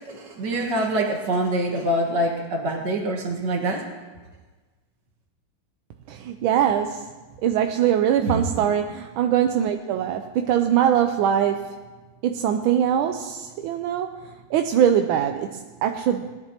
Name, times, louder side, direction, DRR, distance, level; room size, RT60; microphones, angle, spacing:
voice 1, 0.1-3.9 8.2-8.4, right 1 dB, 60° right, 1 dB, 2.1 m, -25 dB
voice 2, 6.1-7.1 7.4-11.8 12.2-14.2 14.5-16.4, right 9 dB, 85° right, 6 dB, 1.4 m, -22 dB
19.0 x 10.5 x 2.9 m, 1.3 s
omnidirectional pair, 2.2 m